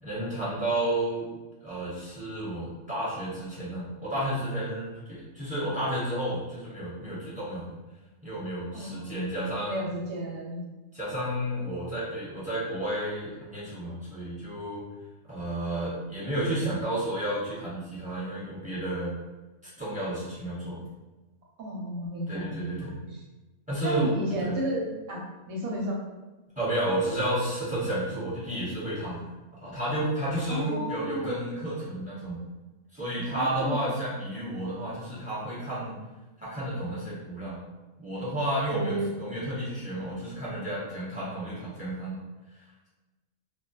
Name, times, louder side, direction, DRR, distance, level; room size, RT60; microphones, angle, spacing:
voice 1, 0.0-1.3 1.6-7.7 8.2-9.8 10.9-14.9 15.3-19.2 19.6-20.8 22.3-23.0 23.7-24.1 24.4-24.6 26.6-29.2 29.6-32.4 32.9-36.0 36.4-37.6 38.0-42.2 42.5-42.9, right 1 dB, 5° right, -10 dB, 0.9 m, -31 dB
voice 2, 8.7-10.6 21.6-23.2 23.8-26.0 30.5-31.3 33.3-33.8 38.7-39.1, right 1 dB, 70° right, -2 dB, 0.9 m, -33 dB
2.2 x 2.1 x 2.9 m, 1.1 s
omnidirectional pair, 1.5 m